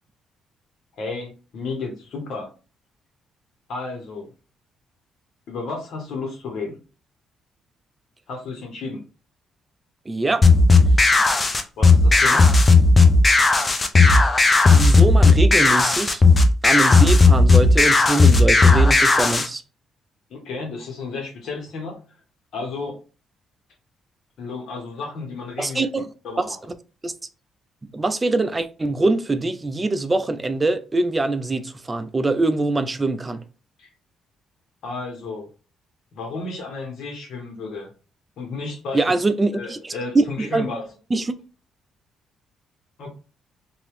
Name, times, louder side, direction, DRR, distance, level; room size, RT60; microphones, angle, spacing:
voice 1, 1.0-2.5 3.7-4.3 5.5-6.8 8.3-9.0 11.8-12.5 20.3-22.0 22.5-23.0 24.4-25.9 26.2-26.6 33.8-33.9 34.8-35.5 36.1-37.9 38.4-39.1 39.5-40.8 43.0-43.1, left 3 dB, 70° left, 1.2 m, -32 dB
voice 2, 10.1-10.4 14.7-16.2 16.6-19.6 25.6-26.0 26.4-26.6 27.0-27.1 27.8-33.4 38.9-40.7 41.1-41.4, right 2 dB, 25° right, 0.4 m, -23 dB
sound 1, 10.4-19.5, left 3 dB, 25° left, 0.5 m, -14 dB
2.9 x 2.6 x 3.2 m
cardioid pair, 90°, 0 cm